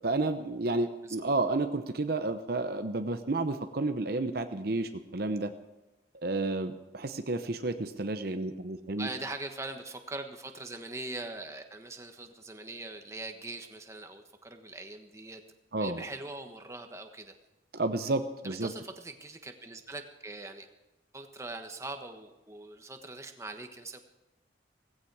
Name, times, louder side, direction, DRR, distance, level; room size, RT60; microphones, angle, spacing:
voice 1, 0.0-5.5 6.1-9.1 15.7-16.0 17.7-18.7, right 2 dB, 55° right, 8 dB, 0.8 m, -31 dB
voice 2, 9.0-15.4 15.8-17.4 18.4-20.7 21.1-24.0, right 2 dB, 15° right, 5 dB, 1.3 m, -42 dB
17.5 x 16.0 x 4.8 m, 1.0 s
head